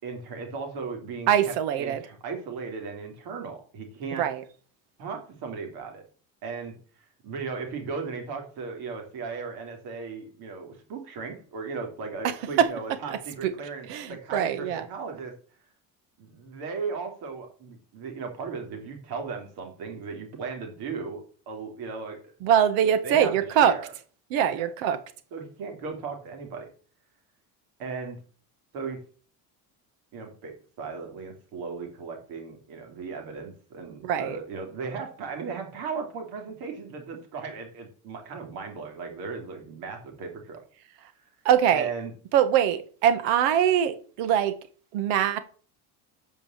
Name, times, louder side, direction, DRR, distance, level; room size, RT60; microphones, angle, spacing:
voice 1, 0.0-4.3 5.0-6.0 6.4-6.7 7.2-15.3 16.2-22.2 23.0-23.3 23.6-23.9 24.5-24.7 25.3-26.7 27.8-28.2 28.7-29.0 30.1-40.6 41.7-42.1, right 5 dB, 60° right, 3.3 m, -36 dB
voice 2, 1.3-2.0 4.2-4.4 12.2-12.3 12.6-12.7 13.4-13.5 13.9-14.9 22.4-23.7 24.3-25.0 34.0-34.4 41.4-41.9 42.3-44.6 44.9-45.4, right 9 dB, 80° right, 1.5 m, -23 dB
8.3 x 5.5 x 7.3 m
cardioid pair, 170°, 42 cm